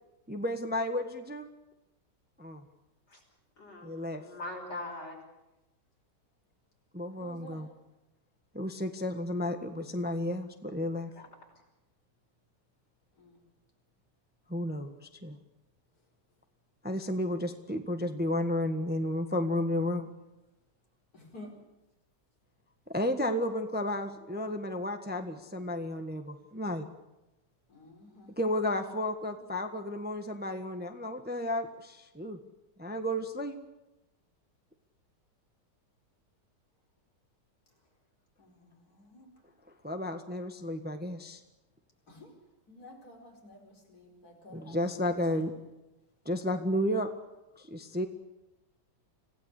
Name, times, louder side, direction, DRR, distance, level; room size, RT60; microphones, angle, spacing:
voice 1, 0.3-1.5 2.4-2.6 3.8-4.2 6.9-7.7 8.5-11.1 14.5-15.4 16.8-20.1 22.9-26.9 28.3-32.4 32.8-33.6 39.8-41.4 44.5-45.5 46.2-47.1 47.6-48.1, left 1 dB, 5° right, 6 dB, 1.3 m, -32 dB
voice 2, 3.6-5.2, left 2 dB, 85° left, 0 dB, 6.8 m, -41 dB
voice 3, 7.2-7.7 13.2-13.4 21.1-21.6 27.7-28.3 38.4-39.3 42.1-42.3 42.7-44.8 45.1-45.4, equal, 55° left, 2 dB, 5.3 m, -51 dB
26.0 x 17.0 x 8.4 m, 0.99 s
omnidirectional pair, 1.9 m